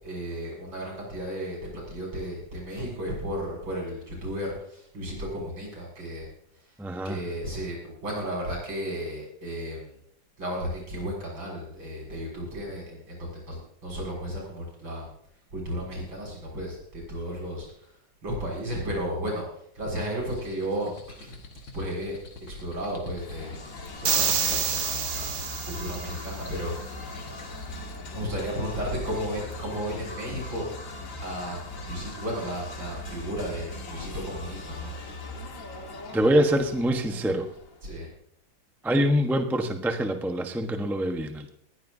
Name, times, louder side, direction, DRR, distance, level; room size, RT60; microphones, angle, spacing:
voice 1, 0.0-6.8 7.0-10.0 10.4-15.1 15.5-20.9 21.2-21.4 21.7-22.2 22.4-23.5 24.0-27.2 28.1-30.6 31.2-34.9 37.8-38.1, equal, 80° right, -2 dB, 7.5 m, -34 dB
voice 2, 6.8-7.2 36.1-37.5 38.8-41.6, equal, ahead, 4 dB, 0.7 m, -25 dB
sound 1, 20.2-28.1, left 2 dB, 85° left, 2.8 m, -49 dB
sound 2, 23.1-37.8, left 2 dB, 45° left, 1.9 m, -39 dB
sound 3, 24.0-26.3, right 7 dB, 50° right, 0.9 m, -27 dB
20.0 x 16.0 x 2.7 m, 0.69 s
omnidirectional pair, 2.1 m